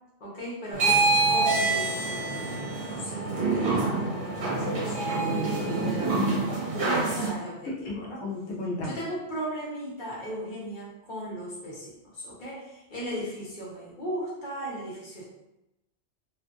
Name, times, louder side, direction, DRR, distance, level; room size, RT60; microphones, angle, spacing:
voice 1, 0.2-5.2 5.6-8.2 8.8-15.3, right 1 dB, 50° left, -6 dB, 1.0 m, -37 dB
sound 1, 0.7-7.3, right 3 dB, 60° right, 1.0 m, -26 dB
voice 2, 5.1-6.0 7.6-9.0, left 2 dB, 80° left, -3 dB, 0.9 m, -34 dB
2.6 x 2.3 x 2.5 m, 0.90 s
omnidirectional pair, 1.2 m